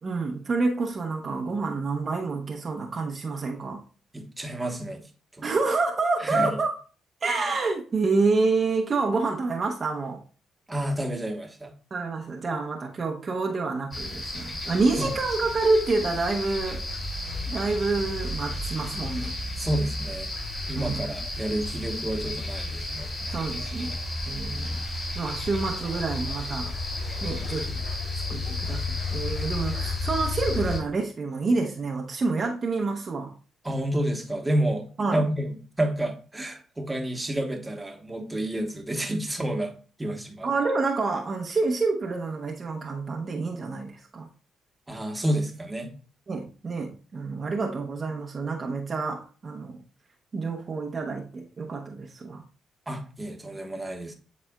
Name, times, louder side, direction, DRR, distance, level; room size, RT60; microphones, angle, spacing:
voice 1, 0.0-3.8 5.4-6.7 7.2-10.2 11.9-16.8 17.5-19.4 20.7-21.0 23.2-23.9 24.3-24.8 25.1-26.7 27.2-27.8 28.3-33.3 35.0-35.3 40.4-44.3 46.3-49.8 50.3-52.4, right 3 dB, 40° right, 0.8 m, -28 dB
voice 2, 4.1-5.0 5.4-5.5 6.2-6.6 10.7-11.7 15.0-15.1 19.6-20.3 20.7-23.1 33.6-34.9 35.1-35.5 35.8-39.7 40.0-40.5 44.9-45.9 52.9-54.1, right 1 dB, 15° right, 1.2 m, -29 dB
sound 1, 13.9-30.8, left 2 dB, 25° left, 3.1 m, -32 dB
9.8 x 4.1 x 2.3 m
cardioid pair, 90°, 0 cm